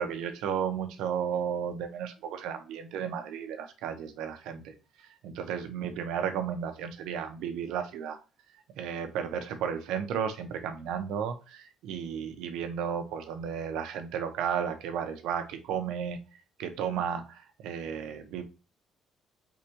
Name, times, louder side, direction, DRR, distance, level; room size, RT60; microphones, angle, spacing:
voice 1, 0.0-4.7 5.0-8.2 8.8-16.2 16.6-18.4, right 8 dB, 90° right, 7 dB, 0.7 m, -33 dB
4.9 x 3.5 x 2.9 m, 0.32 s
cardioid pair, 135°, 0 cm